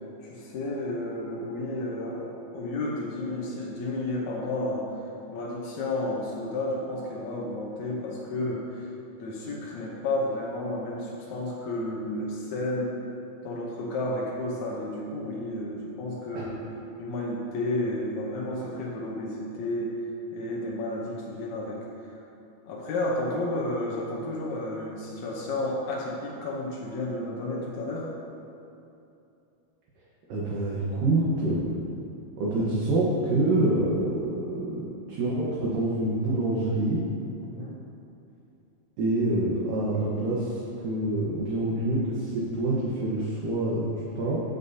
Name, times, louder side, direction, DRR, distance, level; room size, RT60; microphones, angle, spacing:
voice 1, 0.2-4.9 5.3-8.9 9.2-13.0 13.4-16.6 17.0-20.0 20.3-21.8 22.7-28.1 37.4-37.8, left 1 dB, 75° left, -4 dB, 1.7 m, -32 dB
voice 2, 30.3-31.7 32.4-37.0 39.0-44.4, right 2 dB, 65° right, -6 dB, 2.6 m, -26 dB
19.0 x 7.1 x 2.8 m, 2.7 s
omnidirectional pair, 4.6 m